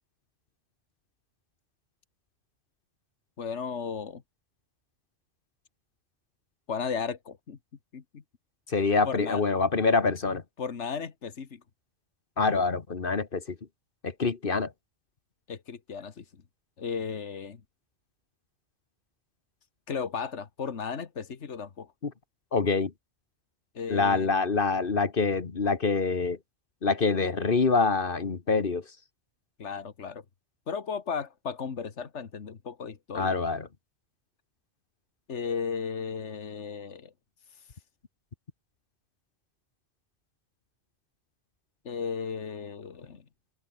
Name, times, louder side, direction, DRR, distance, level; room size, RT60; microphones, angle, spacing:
voice 1, 3.4-4.2 6.7-7.6 7.9-8.2 9.0-9.4 10.6-11.6 15.5-16.2 16.8-17.6 19.9-21.9 23.8-24.3 29.6-30.2 30.7-33.3 35.3-37.1 41.9-43.2, left 6 dB, 85° left, 1.8 m, -35 dB
voice 2, 8.7-10.4 12.4-13.6 14.0-14.7 22.0-22.1 22.5-22.9 23.9-26.4 26.8-28.8 33.1-33.7, left 4 dB, 50° left, 1.6 m, -25 dB
open air
omnidirectional pair, 1.2 m